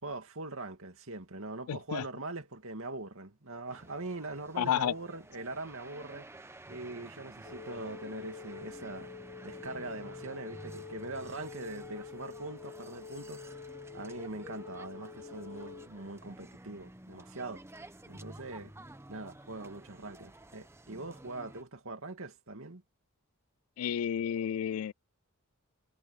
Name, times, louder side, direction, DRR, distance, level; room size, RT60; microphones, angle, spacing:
voice 1, 0.0-9.1 9.4-13.6 13.9-17.6 18.1-18.7 19.1-22.8, right 2 dB, 60° right, 2.7 m, -42 dB
voice 2, 1.7-2.0 4.6-4.9 23.8-24.9, left 9 dB, 70° left, 0.3 m, -31 dB
sound 1, 3.7-21.6, right 1 dB, 10° right, 1.0 m, -52 dB
Wind instrument woodwind instrument, 7.4-15.9, left 5 dB, 50° left, 1.5 m, -47 dB
head